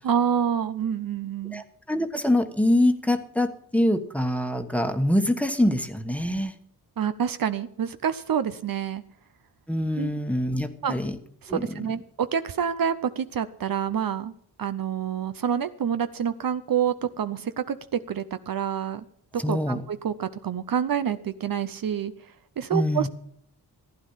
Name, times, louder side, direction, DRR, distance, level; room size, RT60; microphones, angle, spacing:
voice 1, 0.0-1.6 7.0-9.0 10.0-10.1 10.8-10.9 11.4-14.3 14.6-19.0 19.5-22.1 22.6-23.1, right 8 dB, 60° right, 11 dB, 0.8 m, -27 dB
voice 2, 1.5-6.5 9.7-11.2 11.5-11.9 19.4-19.8 22.7-23.1, left 1 dB, 5° left, 7 dB, 1.3 m, -24 dB
15.0 x 10.5 x 5.7 m, 0.66 s
wide cardioid pair, 105°, 39 cm